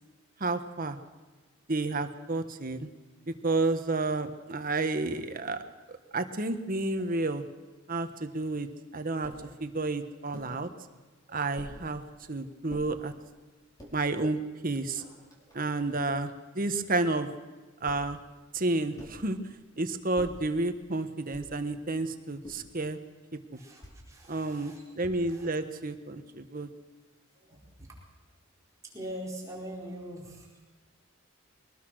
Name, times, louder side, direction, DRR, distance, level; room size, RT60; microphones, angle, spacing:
voice 1, 0.4-1.0 1.7-2.9 3.3-5.6 5.9-7.4 7.9-8.7 8.9-9.3 9.6-10.7 11.3-12.0 12.3-13.1 13.9-15.0 15.5-17.3 17.8-18.2 18.5-19.4 19.8-23.0 23.5-23.6 24.3-26.7, right 2 dB, 45° right, 8 dB, 1.4 m, -31 dB
sound 1, 9.2-9.5 10.3-10.6 11.6-11.8 12.7-12.9 13.6-14.0 14.7-14.8 15.0-16.0 17.9-18.2 19.0-19.3 20.1-20.5 21.3-21.7 22.4-22.8 23.8-24.1 25.0-25.5, equal, 20° left, 4.3 m, -47 dB
voice 2, 23.6-24.8 25.3-25.5 27.5-27.6 28.9-30.6, equal, 15° right, -4 dB, 4.5 m, -42 dB
23.0 x 19.0 x 6.4 m, 1.3 s
head